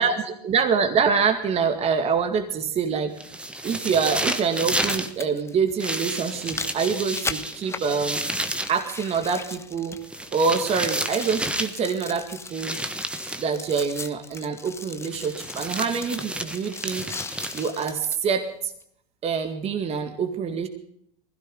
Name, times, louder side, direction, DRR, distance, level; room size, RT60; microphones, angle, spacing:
voice 1, 0.0-3.1 3.6-8.2 8.7-10.0 10.3-12.8 13.4-17.1 17.5-18.7 19.2-20.7, right 6 dB, 30° right, 6 dB, 2.2 m, -25 dB
sound 1, 1.3-1.4 3.3-3.4 4.5-10.3 10.6-18.2 18.8-18.9, left 4 dB, 15° left, 1.1 m, -38 dB
sound 2, 3.2-5.1 5.8-8.8 10.0-11.8 12.5-13.5 15.1-17.9, right 1 dB, 5° right, 1.4 m, -31 dB
21.0 x 16.0 x 3.9 m, 0.71 s
hypercardioid pair, 105°, 20 cm